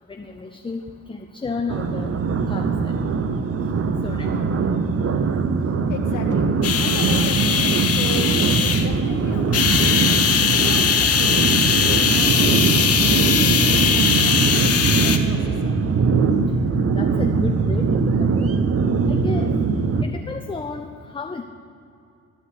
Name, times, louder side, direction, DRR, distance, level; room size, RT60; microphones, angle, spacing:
voice 1, 0.1-2.2 2.5-2.9 4.0-4.3 8.1-8.4 9.3-9.7 12.3-12.4 16.9-18.5 19.1-19.5 20.0-21.4, left 4 dB, 15° left, 5 dB, 0.6 m, -33 dB
sound 1, 1.7-20.0, right 4 dB, 50° right, 0.8 m, -21 dB
voice 2, 5.7-8.3 8.6-9.9 10.5-15.7, left 5 dB, 80° left, 3 dB, 1.7 m, -36 dB
sound 2, 6.6-8.9 9.5-15.2, left 7 dB, 50° left, 1.0 m, -20 dB
13.5 x 5.7 x 9.5 m, 2.6 s
cardioid pair, 90°, 30 cm